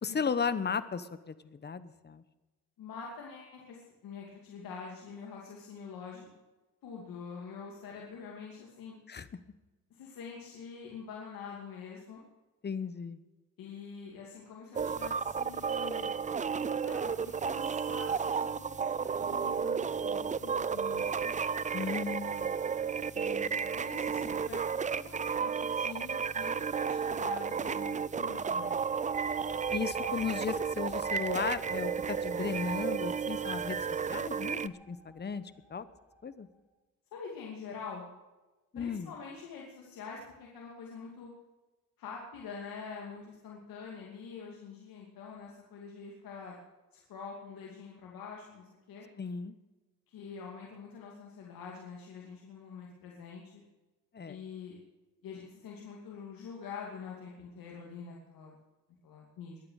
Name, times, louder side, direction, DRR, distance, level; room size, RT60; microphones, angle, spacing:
voice 1, 0.0-2.2 9.1-9.3 12.6-13.2 21.7-22.6 29.7-35.4 35.7-35.9 36.2-36.5 38.7-39.1 49.2-49.5 54.1-54.4, left 6 dB, 30° left, 14 dB, 1.0 m, -35 dB
voice 2, 2.8-6.3 6.8-9.0 9.9-12.2 13.6-16.1 16.8-21.3 23.1-28.8 30.0-30.2 37.1-38.1 38.7-41.3 42.0-46.6 46.9-49.1 50.1-53.6 54.3-54.8 55.2-58.6 59.0-59.6, left 5 dB, 85° left, -2 dB, 2.7 m, -45 dB
sound 1, 14.7-34.7, right 6 dB, 20° right, 0.4 m, -33 dB
sound 2, 28.9-36.3, right 2 dB, 5° right, 3.4 m, -49 dB
22.5 x 8.7 x 6.5 m, 1.1 s
cardioid pair, 110°, 34 cm